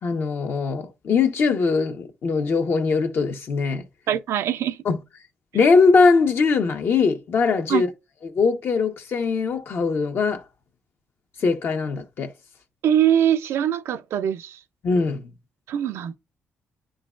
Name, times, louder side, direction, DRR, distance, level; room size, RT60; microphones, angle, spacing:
voice 1, 0.0-3.8 4.8-5.0 5.5-7.9 8.2-10.4 11.4-12.3 14.8-15.3, left 4 dB, 55° left, 1.1 m, -21 dB
voice 2, 4.1-4.8 7.7-7.8 12.8-14.6 15.7-16.2, right 10 dB, 75° right, 0.5 m, -22 dB
10.0 x 3.8 x 2.5 m
cardioid pair, 85°, 5 cm